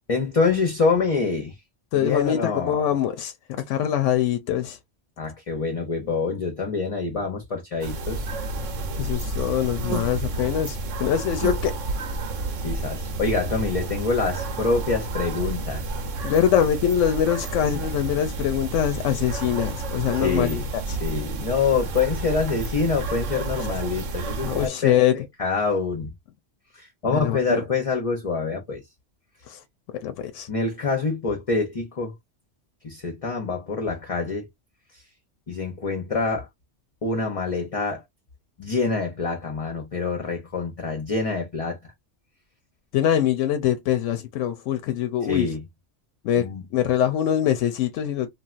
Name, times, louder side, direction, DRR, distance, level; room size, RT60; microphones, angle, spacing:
voice 1, 0.1-1.5 1.9-2.8 5.2-8.3 12.6-15.8 20.1-20.7 21.0-24.9 25.4-26.1 26.8-28.8 30.5-32.1 32.8-34.5 35.5-36.5 37.0-38.0 38.6-41.8 45.3-45.6 46.4-46.6, left 4 dB, 40° left, 0.6 m, -26 dB
voice 2, 1.9-3.3 3.7-4.8 9.0-11.7 16.2-21.0 24.5-25.3 27.1-27.6 29.5-29.6 30.0-30.5 42.9-45.5 46.2-48.3, left 10 dB, 90° left, 0.9 m, -23 dB
sound 1, 7.8-24.7, right 3 dB, 90° right, 1.1 m, -30 dB
3.2 x 2.5 x 2.4 m
omnidirectional pair, 1.2 m